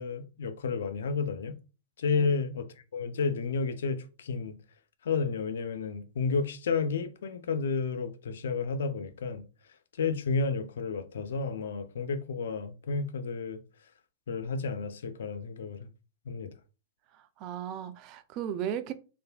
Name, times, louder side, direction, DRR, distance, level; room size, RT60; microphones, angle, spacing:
voice 1, 0.0-1.6 2.0-2.7 2.9-4.6 5.0-9.4 10.0-13.6 14.3-15.9 16.3-16.5, left 4 dB, 75° left, 0.4 m, -31 dB
voice 2, 17.1-18.9, right 9 dB, 45° right, 0.3 m, -36 dB
3.3 x 2.4 x 2.2 m
hypercardioid pair, 110°, 0 cm